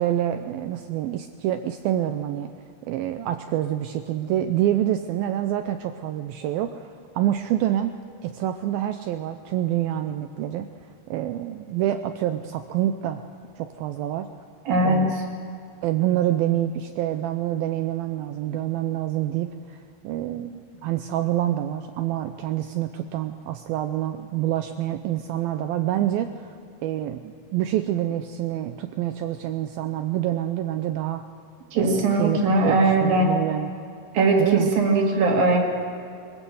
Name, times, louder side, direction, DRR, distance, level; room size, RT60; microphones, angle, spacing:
voice 1, 0.0-2.5 2.8-10.7 11.1-13.2 13.6-14.3 14.8-15.1 15.8-19.8 20.0-26.5 26.8-31.2 31.8-33.7 34.4-34.7, right 12 dB, 85° right, 8 dB, 2.1 m, -27 dB
voice 2, 14.7-15.1 31.7-33.3 34.1-35.6, right 2 dB, 60° right, 1 dB, 4.0 m, -20 dB
23.0 x 15.5 x 7.9 m, 2.6 s
omnidirectional pair, 4.9 m